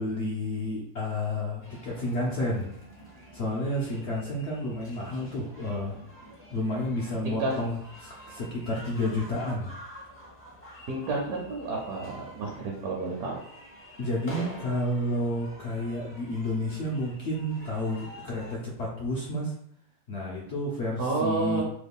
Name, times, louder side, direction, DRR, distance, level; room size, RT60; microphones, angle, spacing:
voice 1, 0.0-2.7 3.3-6.0 6.5-9.8 14.0-19.5 20.1-21.6, left 1 dB, 75° left, -3 dB, 0.6 m, -30 dB
sound 1, 1.6-18.6, equal, 20° left, 0.4 m, -47 dB
voice 2, 7.2-7.6 10.9-13.4 21.0-21.6, right 3 dB, 70° right, -2 dB, 1.1 m, -30 dB
3.1 x 2.2 x 3.5 m, 0.70 s
omnidirectional pair, 1.8 m